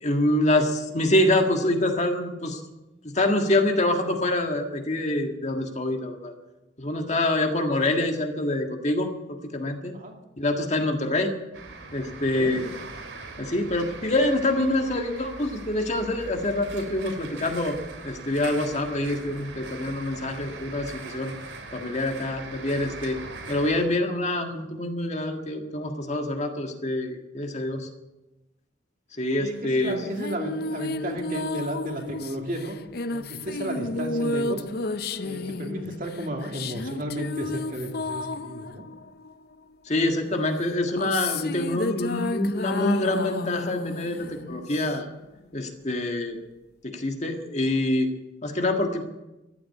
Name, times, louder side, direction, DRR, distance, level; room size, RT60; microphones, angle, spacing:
voice 1, 0.0-2.6 3.1-6.3 6.8-9.1 9.5-9.9 10.4-11.3 11.9-12.6 13.4-17.7 18.0-21.3 21.7-23.2 23.5-27.9 29.2-30.0 39.9-45.1 45.5-46.4 46.8-48.1 48.4-49.0, left 1 dB, 40° left, 4 dB, 1.7 m, -25 dB
sound 1, 11.5-23.9, right 3 dB, 85° right, 3.1 m, -41 dB
voice 2, 29.4-32.8 33.1-34.7 35.2-38.8, right 1 dB, 45° right, 2 dB, 2.6 m, -33 dB
sound 2, 29.8-39.7 40.6-45.2, left 2 dB, 55° left, 0.6 m, -32 dB
14.0 x 11.5 x 8.4 m, 1.0 s
head